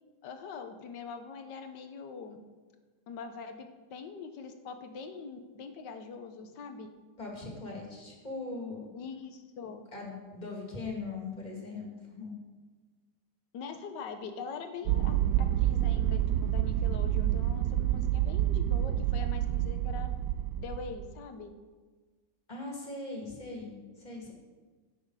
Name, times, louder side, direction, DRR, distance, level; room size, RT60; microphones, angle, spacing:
voice 1, 0.2-2.4 3.1-6.9 8.9-9.8 13.5-20.1 20.6-21.5, left 5 dB, 75° left, 7 dB, 1.6 m, -43 dB
voice 2, 7.2-8.9 9.9-12.4 22.5-24.3, left 3 dB, 25° left, -1 dB, 2.4 m, -40 dB
sound 1, 14.9-21.1, right 12 dB, 75° right, 1.1 m, -28 dB
16.0 x 6.4 x 4.8 m, 1.4 s
omnidirectional pair, 1.9 m